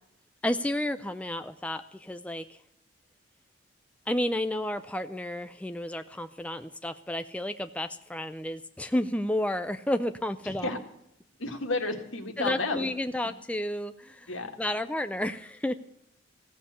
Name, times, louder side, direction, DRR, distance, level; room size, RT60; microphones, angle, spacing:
voice 1, 0.4-2.6 4.1-10.7 12.4-14.3 14.6-15.7, left 1 dB, 5° left, 9 dB, 0.4 m, -31 dB
voice 2, 10.4-10.8 11.4-12.9 14.3-14.6, left 3 dB, 85° left, 5 dB, 2.0 m, -32 dB
15.5 x 7.4 x 8.1 m, 0.78 s
head